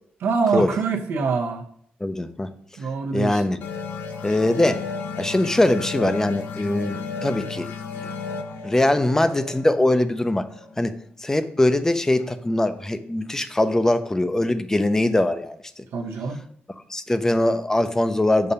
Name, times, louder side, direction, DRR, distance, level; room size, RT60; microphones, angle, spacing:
voice 1, 0.2-1.6 2.8-3.4 15.9-16.4, right 5 dB, 85° right, 2 dB, 0.8 m, -24 dB
voice 2, 2.0-2.5 3.1-3.6 4.2-4.9 5.2-7.7 8.0-8.1 8.6-10.5 10.8-15.6 16.9-18.5, left 1 dB, 15° left, 11 dB, 0.4 m, -22 dB
sound 1, 3.6-10.9, left 5 dB, 70° left, 0.7 m, -34 dB
6.7 x 2.7 x 5.4 m, 0.65 s
cardioid pair, 100°, 4 cm